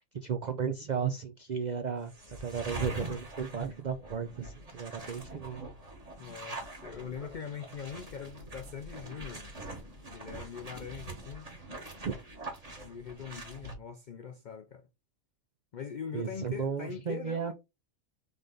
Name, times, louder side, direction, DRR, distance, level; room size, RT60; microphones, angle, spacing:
voice 1, 0.1-5.7 12.0-12.1 16.1-17.5, right 7 dB, 75° right, 0.4 m, -34 dB
sound 1, 2.1-13.7, right 2 dB, 30° right, 1.2 m, -44 dB
voice 2, 6.2-9.4 10.1-11.5 12.8-14.9 15.7-17.5, left 7 dB, 75° left, 0.4 m, -42 dB
4.1 x 3.3 x 3.7 m
omnidirectional pair, 1.4 m